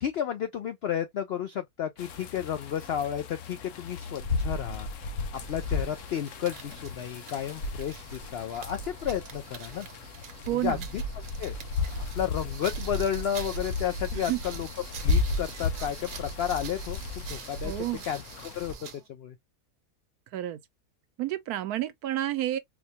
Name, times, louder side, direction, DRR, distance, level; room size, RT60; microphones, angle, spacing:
voice 1, 0.0-4.9 5.3-9.9 10.5-11.0 11.4-11.6 12.2-14.7 15.0-17.7 18.0-18.7 19.1-19.4, left 9 dB, 80° left, 0.5 m, -32 dB
sound 1, 2.0-18.7, left 3 dB, 65° left, 0.9 m, -34 dB
sound 2, 5.3-19.1, right 7 dB, 65° right, 1.0 m, -46 dB
voice 2, 10.5-10.9 14.1-14.4 17.6-18.0 20.3-20.6 21.2-22.6, right 14 dB, 80° right, 1.1 m, -30 dB
4.2 x 2.2 x 2.7 m
omnidirectional pair, 1.6 m